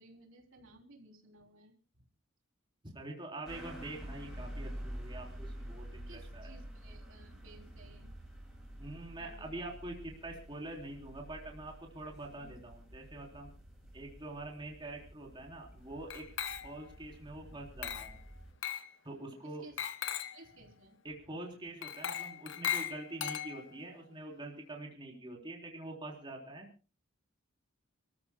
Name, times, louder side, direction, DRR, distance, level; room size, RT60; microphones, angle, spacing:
voice 1, 0.0-1.7 6.1-8.2 9.2-9.5 12.4-12.6 19.4-19.8 20.3-21.0, right 2 dB, 75° right, 1 dB, 3.5 m, -57 dB
voice 2, 2.9-6.6 8.8-13.5 13.9-16.3 16.6-18.2 19.0-19.6 21.0-26.7, right 2 dB, 25° right, 0 dB, 3.6 m, -45 dB
sound 1, 3.4-18.5, equal, ahead, 7.2 m, -48 dB
Glass, 16.1-16.9 17.8-18.2 18.6-18.9 19.8-20.4 21.8-23.8, left 9 dB, 65° left, 1.1 m, -38 dB
30.0 x 14.0 x 2.2 m, 0.33 s
head